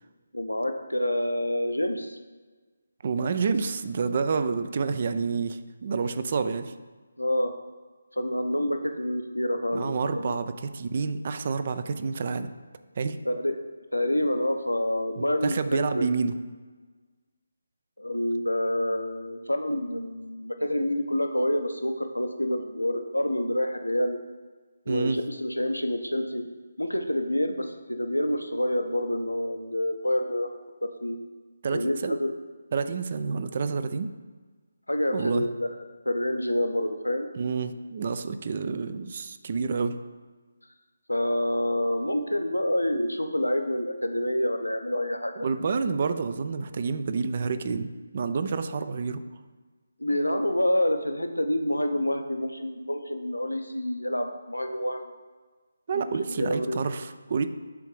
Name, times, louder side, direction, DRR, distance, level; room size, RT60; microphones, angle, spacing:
voice 1, 0.3-2.2 7.2-7.5 8.1-10.4 13.2-13.6 13.9-16.1 18.0-24.2 24.9-26.5 26.8-30.5 30.8-31.2 31.7-32.3 34.9-35.8 36.0-37.3 41.1-45.5 50.0-55.1 55.9-56.8, left 1 dB, 80° left, 5 dB, 0.7 m, -27 dB
voice 2, 3.0-6.7 9.7-12.5 13.0-13.2 15.2-16.3 24.9-25.2 31.6-32.2 32.7-34.1 35.1-35.5 37.4-40.0 45.4-49.2 55.9-57.5, right 5 dB, 40° right, 10 dB, 0.4 m, -28 dB
6.8 x 3.7 x 4.8 m, 1.4 s
figure-of-eight pair, 150°, 0 cm